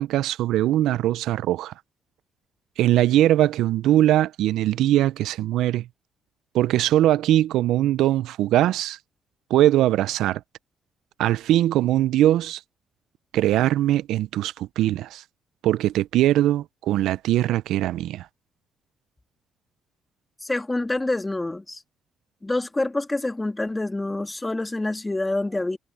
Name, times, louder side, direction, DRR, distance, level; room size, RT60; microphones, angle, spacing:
voice 1, 0.0-1.7 2.8-5.9 6.5-9.0 9.5-10.4 11.2-12.6 13.3-15.2 15.6-18.3, right 13 dB, 80° right, 0.4 m, -21 dB
voice 2, 20.4-21.8 22.4-25.8, left 2 dB, 15° left, 1.8 m, -27 dB
supercardioid pair, 65°, 0 cm